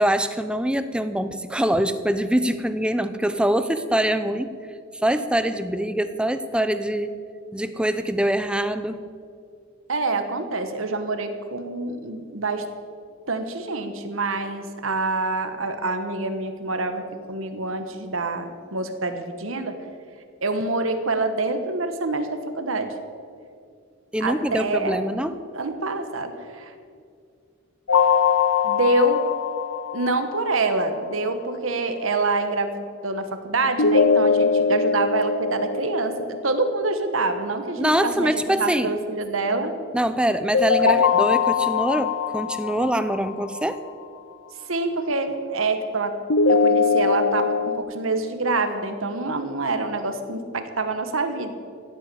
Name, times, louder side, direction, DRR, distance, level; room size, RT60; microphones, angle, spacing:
voice 1, 0.0-4.5 5.0-7.1 7.5-9.0 24.1-25.4 37.8-38.9 39.9-43.8, right 1 dB, 5° right, 11 dB, 0.6 m, -24 dB
voice 2, 9.9-12.6 13.3-19.7 20.4-22.9 24.2-25.1 25.5-26.7 28.6-29.2 29.9-38.3 38.6-39.7 40.8-41.0 44.7-46.1 46.5-51.5, right 3 dB, 90° right, 8 dB, 1.4 m, -26 dB
sound 1, 27.9-30.8 33.8-36.8 40.5-43.7 46.3-47.8, left 5 dB, 80° left, 0.7 m, -22 dB
16.5 x 8.4 x 8.4 m, 2.3 s
head